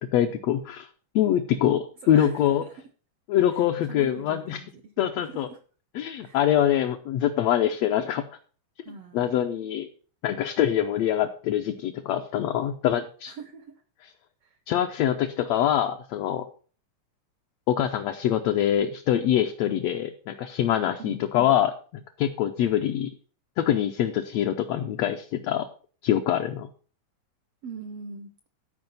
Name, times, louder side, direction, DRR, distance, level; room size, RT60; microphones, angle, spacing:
voice 1, 0.1-0.9 1.1-2.6 3.3-4.6 5.0-5.5 5.9-8.2 9.1-9.9 10.2-13.3 14.7-16.4 17.7-21.7 22.2-23.1 23.6-25.7 26.0-26.7, left 11 dB, 75° left, 4 dB, 1.5 m, -24 dB
voice 2, 2.1-2.9 3.5-5.6 6.2-6.4 8.8-9.5 13.3-13.8 14.4-14.6 21.0-21.2 27.6-28.3, right 5 dB, 75° right, 8 dB, 1.4 m, -42 dB
12.5 x 4.8 x 5.3 m, 0.41 s
omnidirectional pair, 3.6 m